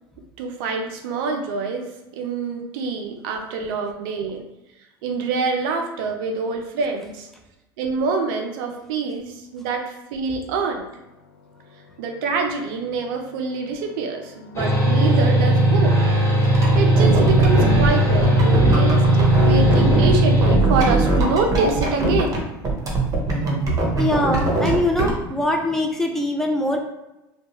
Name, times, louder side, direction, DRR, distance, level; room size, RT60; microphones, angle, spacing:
voice 1, 0.4-4.4 5.0-7.3 7.8-10.9 12.0-16.0 16.8-22.4, right 4 dB, 70° right, 3 dB, 0.5 m, -26 dB
sound 1, 11.4-22.2, left 7 dB, 90° left, 0.4 m, -33 dB
sound 2, 14.5-20.6, right 1 dB, 25° left, 1.1 m, -17 dB
sound 3, 16.4-20.1 20.4-22.4 22.6-25.1, right 2 dB, 30° right, 0.7 m, -21 dB
voice 2, 24.0-26.8, left 1 dB, 5° left, 1 dB, 0.4 m, -22 dB
2.3 x 2.2 x 2.8 m, 0.95 s
hypercardioid pair, 80°, 12 cm